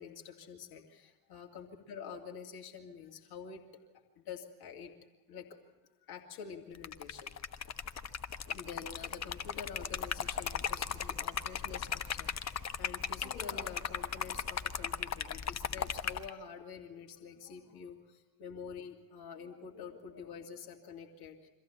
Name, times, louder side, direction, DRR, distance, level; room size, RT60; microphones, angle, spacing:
voice 1, 0.0-3.8 4.2-4.9 5.3-5.6 6.1-7.6 8.5-21.3, left 6 dB, 55° left, 2 dB, 2.7 m, -47 dB
Liquid, 6.7-16.3, left 7 dB, 35° left, 1.2 m, -37 dB
24.0 x 15.0 x 8.6 m, 1.2 s
hypercardioid pair, 60°, 45 cm